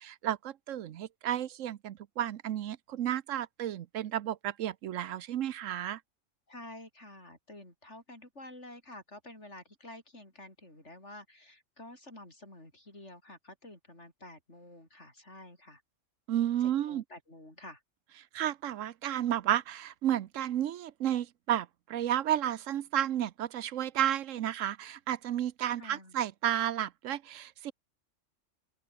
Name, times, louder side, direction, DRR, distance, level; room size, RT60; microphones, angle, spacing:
voice 1, 0.0-6.0 16.3-17.0 18.3-27.7, right 11 dB, 80° right, 1.1 m, -32 dB
voice 2, 6.5-15.8 16.9-17.8 25.8-26.2, left 1 dB, 60° left, 7.5 m, -50 dB
open air
omnidirectional pair, 1.3 m